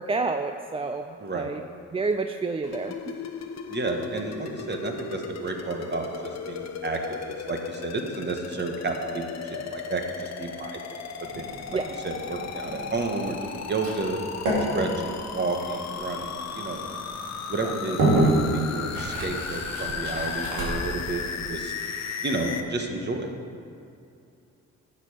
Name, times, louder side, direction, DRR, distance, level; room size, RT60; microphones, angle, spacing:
voice 1, 0.0-1.6 1.9-3.0 11.7-11.9 14.9-15.0 17.6-18.0, right 3 dB, 20° right, 6 dB, 0.4 m, -29 dB
voice 2, 1.2-1.5 3.7-11.0 11.3-11.5 11.7-13.4 13.7-14.2 14.7-16.9 17.5-21.7 22.2-23.3, right 3 dB, 35° right, 3 dB, 1.4 m, -31 dB
sound 1, 2.6-22.6, left 6 dB, 60° left, 0.9 m, -36 dB
sound 2, 11.2-21.0, right 1 dB, 90° right, 2.7 m, -30 dB
12.0 x 7.6 x 5.0 m, 2.6 s
cardioid pair, 90°, 30 cm